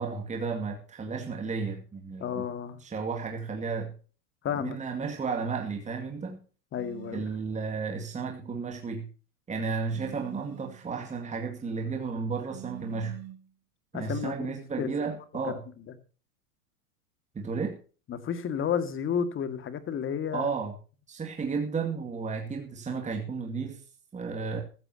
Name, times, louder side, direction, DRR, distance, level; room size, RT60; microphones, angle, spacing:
voice 1, 0.0-2.5 2.8-3.9 4.6-6.4 7.1-9.1 9.5-13.2 13.9-15.6 17.3-17.8 20.3-20.7 21.1-23.8 24.1-24.6, right 5 dB, 15° right, 2.3 m, -33 dB
voice 2, 2.2-2.8 4.4-4.8 6.7-7.2 13.9-14.9 18.1-20.5, left 8 dB, 25° left, 2.1 m, -31 dB
sound 1, 6.8-7.4 9.9-10.9 12.5-13.5, right 16 dB, 35° right, 1.8 m, -45 dB
15.0 x 14.5 x 2.9 m
hypercardioid pair, 120°, 45 cm